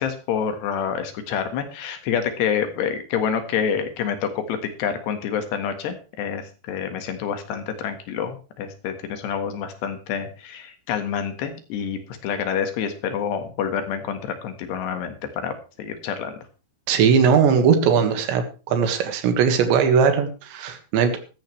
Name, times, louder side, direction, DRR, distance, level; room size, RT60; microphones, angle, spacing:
voice 1, 0.0-16.3, left 7 dB, 70° left, 8 dB, 3.6 m, -27 dB
voice 2, 16.9-21.2, right 6 dB, 80° right, 6 dB, 4.0 m, -19 dB
15.0 x 14.5 x 3.3 m, 0.34 s
omnidirectional pair, 5.1 m